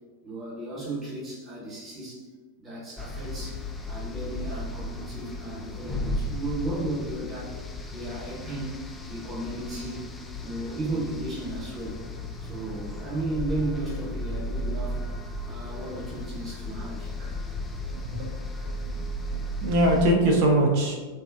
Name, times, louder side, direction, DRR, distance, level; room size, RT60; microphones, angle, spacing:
voice 1, 0.2-2.2 2.6-7.6 7.9-8.8 9.0-10.0 10.4-12.0 12.4-15.0 15.4-17.1, right 2 dB, 25° right, -8 dB, 1.0 m, -34 dB
sound 1, 3.0-20.1, left 1 dB, 15° left, 0.3 m, -35 dB
voice 2, 17.9-18.7 19.3-21.0, right 1 dB, 45° right, 1 dB, 0.6 m, -23 dB
3.4 x 2.4 x 2.4 m, 1.4 s
figure-of-eight pair, 90°, 0 cm